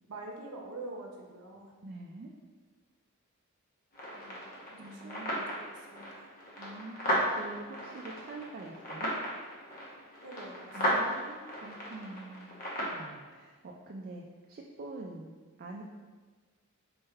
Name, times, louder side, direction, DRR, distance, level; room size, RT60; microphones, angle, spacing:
voice 1, 0.1-1.7 4.1-6.3 10.2-11.3, right 2 dB, 75° right, 0 dB, 0.7 m, -46 dB
voice 2, 1.8-2.3 4.8-5.4 6.6-9.1 10.7-15.3 15.6-15.8, right 2 dB, 45° right, -1 dB, 0.4 m, -45 dB
sound 1, 3.9-13.0, equal, 40° left, 1.0 m, -35 dB
4.2 x 3.4 x 3.4 m, 1.4 s
head